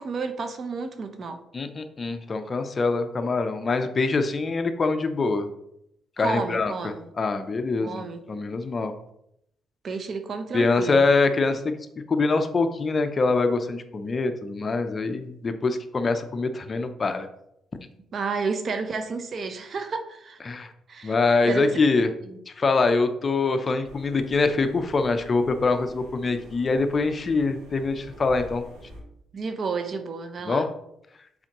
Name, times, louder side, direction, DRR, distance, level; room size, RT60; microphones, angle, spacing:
voice 1, 0.0-1.4 6.2-7.1 7.8-8.2 9.8-11.1 18.1-20.4 20.9-21.1 21.5-21.7 22.3-22.4 29.3-30.6, right 4 dB, 50° right, 8 dB, 0.7 m, -31 dB
voice 2, 1.5-5.5 6.2-8.9 10.5-11.8 12.1-17.3 20.5-20.7 21.0-22.1 22.5-28.6 30.5-30.7, left 3 dB, 35° left, 8 dB, 0.6 m, -24 dB
sound 1, 23.8-29.0, equal, 85° right, 1.7 m, -46 dB
7.3 x 4.4 x 3.0 m, 0.79 s
cardioid pair, 90°, 0 cm